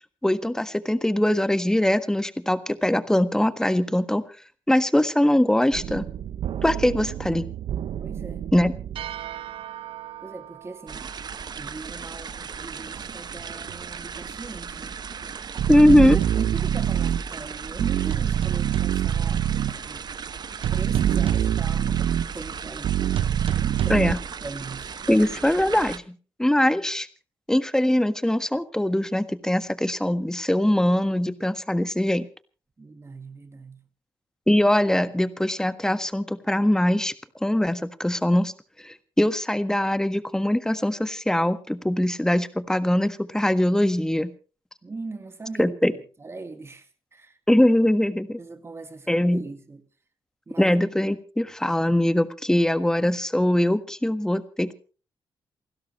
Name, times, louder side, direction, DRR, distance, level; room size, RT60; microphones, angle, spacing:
voice 1, 0.2-4.2 4.7-6.1 6.6-7.4 8.5-8.7 15.7-16.2 23.9-24.2 25.1-27.1 27.5-32.3 34.5-37.1 37.4-38.5 38.8-44.3 45.6-45.9 47.5-48.4 49.1-49.4 50.6-54.7, left 1 dB, 5° left, 1.5 m, -22 dB
sound 1, 5.7-10.7 13.4-13.5 13.7-13.8 15.6-17.2 17.8-19.7 20.6-22.3 22.8-24.1, right 10 dB, 75° right, 0.7 m, -26 dB
voice 2, 8.0-8.5 10.2-11.1 11.5-15.0 15.8-15.9 16.4-20.1 20.7-22.0 22.3-24.0 24.4-25.3 32.8-33.9 44.8-47.4 48.4-49.8 50.5-50.7, right 3 dB, 30° right, 2.2 m, -40 dB
sound 2, 10.9-26.0, right 6 dB, 50° right, 1.0 m, -37 dB
28.5 x 12.5 x 3.2 m
cardioid pair, 85°, 9 cm